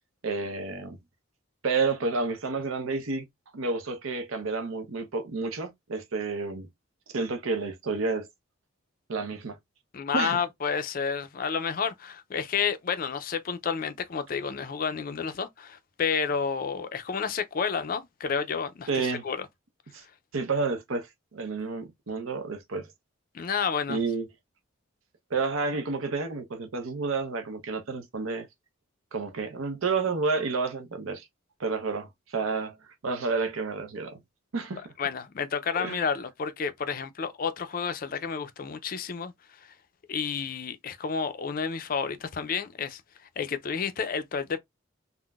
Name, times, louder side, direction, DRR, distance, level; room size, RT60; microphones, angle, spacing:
voice 1, 0.2-1.0 1.6-3.3 3.5-6.7 7.1-8.3 9.1-9.6 10.1-10.4 18.9-19.2 19.9-20.0 20.3-21.1 21.3-22.9 23.9-24.3 25.3-28.5 29.1-31.3 31.6-32.8 33.0-34.2 34.5-34.9 35.8-36.0, right 4 dB, 85° right, 0.7 m, -30 dB
voice 2, 9.9-19.5 23.3-24.0 35.0-39.3 40.1-43.0 43.4-44.6, left 6 dB, 45° left, 0.4 m, -30 dB
3.7 x 2.0 x 2.3 m
head